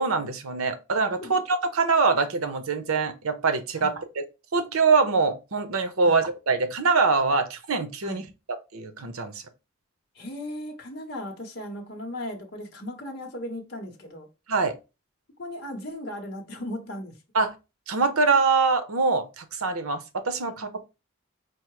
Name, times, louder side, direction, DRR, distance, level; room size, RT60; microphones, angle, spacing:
voice 1, 0.0-4.2 4.5-8.2 8.7-9.4 14.5-14.7 17.3-17.5 17.9-20.9, right 4 dB, 90° right, 0.7 m, -24 dB
voice 2, 10.1-14.3 15.4-17.2, left 1 dB, 50° left, 0.8 m, -37 dB
4.5 x 2.0 x 4.6 m
head